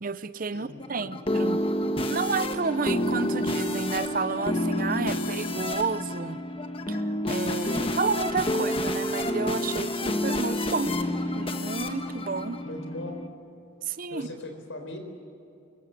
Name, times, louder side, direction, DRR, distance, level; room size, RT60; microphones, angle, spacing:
voice 1, 0.0-1.6 2.1-6.4 6.9-10.9 11.3-12.6 13.8-14.3, right 4 dB, 45° right, 14 dB, 0.6 m, -31 dB
voice 2, 0.5-1.1 12.6-13.2 14.1-15.0, left 1 dB, 75° left, 5 dB, 4.2 m, -39 dB
sound 1, 0.8-13.3, left 1 dB, 25° left, 1.3 m, -29 dB
24.5 x 21.5 x 8.3 m, 2.7 s
head